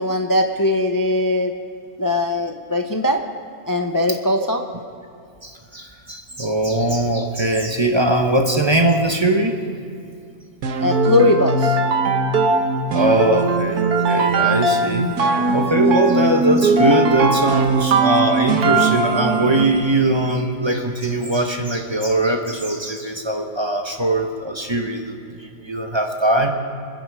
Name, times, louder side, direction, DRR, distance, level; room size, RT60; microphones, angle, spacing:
voice 1, 0.0-1.5 2.0-3.2 3.7-4.6 10.8-11.8, left 2 dB, 25° left, 5 dB, 0.5 m, -20 dB
voice 2, 5.4-9.6 12.9-15.1 15.5-26.5, right 1 dB, 20° right, 3 dB, 1.0 m, -20 dB
sound 1, 10.6-19.8, right 3 dB, 85° right, 1.6 m, -19 dB
26.5 x 10.5 x 4.8 m, 2.4 s
omnidirectional pair, 1.6 m